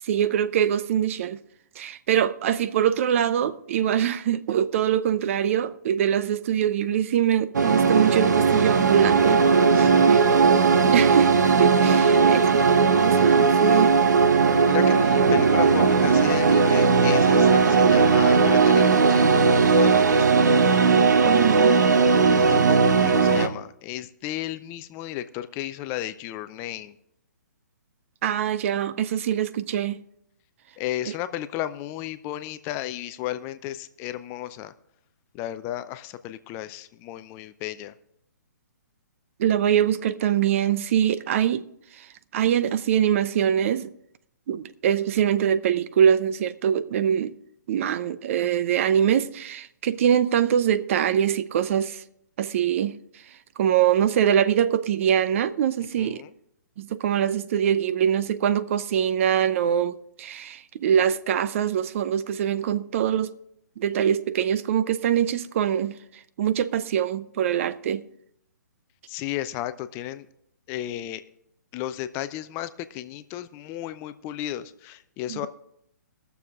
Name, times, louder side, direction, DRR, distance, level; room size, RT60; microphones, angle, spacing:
voice 1, 0.0-1.4 1.8-9.5 9.7-10.5 10.8-12.5 12.9-14.0 21.2-21.8 28.2-30.0 31.1-31.2 39.4-41.7 41.9-42.1 42.3-43.9 44.5-47.4 47.7-52.0 52.4-53.0 53.6-56.2 56.8-63.4 63.8-68.0 75.3-75.5, right 9 dB, 45° right, 0.6 m, -23 dB
sound 1, 7.5-23.5, right 5 dB, 75° right, 0.9 m, -18 dB
voice 2, 9.8-10.5 12.1-12.6 14.6-20.4 22.3-26.9 30.8-34.7 35.3-37.9 56.0-56.3 69.1-70.3 70.7-71.2 71.7-75.5, left 13 dB, 25° left, 0.5 m, -34 dB
19.5 x 7.0 x 3.6 m
hypercardioid pair, 140°, 10 cm